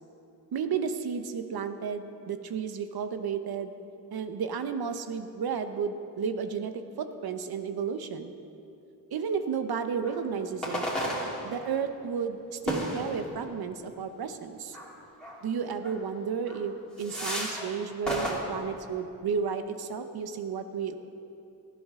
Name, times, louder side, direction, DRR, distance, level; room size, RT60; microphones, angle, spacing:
voice 1, 0.5-3.7 4.1-8.3 9.1-10.8 11.4-14.8 15.4-20.9, right 6 dB, 80° right, 8 dB, 1.0 m, -32 dB
sound 1, 10.0-10.2 10.6-11.8 12.7-13.5 14.7-14.9 15.2-15.4 15.8-16.0 16.5-16.6 17.0-17.7 18.1-18.3, equal, ahead, 3.0 m, -33 dB
18.0 x 13.5 x 3.7 m, 2.8 s
wide cardioid pair, 115°, 37 cm